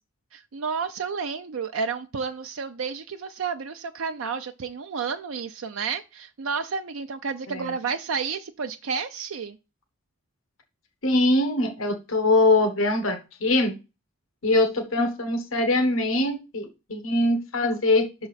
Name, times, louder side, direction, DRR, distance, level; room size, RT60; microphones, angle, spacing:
voice 1, 0.3-9.6, right 5 dB, 80° right, 6 dB, 0.5 m, -31 dB
voice 2, 11.0-13.7 14.4-18.1, left 2 dB, 80° left, 6 dB, 1.3 m, -22 dB
6.1 x 3.9 x 5.7 m, 0.28 s
head